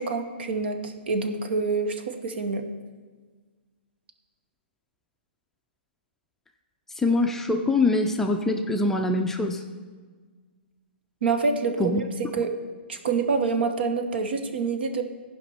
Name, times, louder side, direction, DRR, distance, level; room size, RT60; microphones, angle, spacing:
voice 1, 0.0-2.6 11.2-12.0 12.3-12.5 12.9-15.0, right 4 dB, 70° right, 6 dB, 1.1 m, -26 dB
voice 2, 7.0-9.6 11.8-12.0, left 2 dB, 5° left, 3 dB, 0.4 m, -24 dB
15.0 x 5.2 x 4.4 m, 1.5 s
hypercardioid pair, 145°, 6 cm